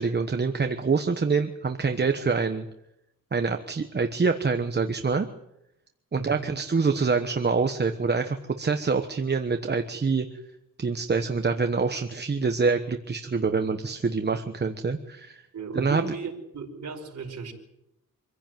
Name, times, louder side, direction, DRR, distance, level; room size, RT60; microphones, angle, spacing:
voice 1, 0.0-2.7 3.3-5.3 6.1-10.3 10.8-15.4 15.7-16.0, right 4 dB, 30° right, 6 dB, 1.2 m, -26 dB
voice 2, 6.1-6.5 15.5-17.5, right 5 dB, 55° right, -1 dB, 5.2 m, -35 dB
25.5 x 16.0 x 9.2 m, 0.84 s
wide cardioid pair, 155°, 32 cm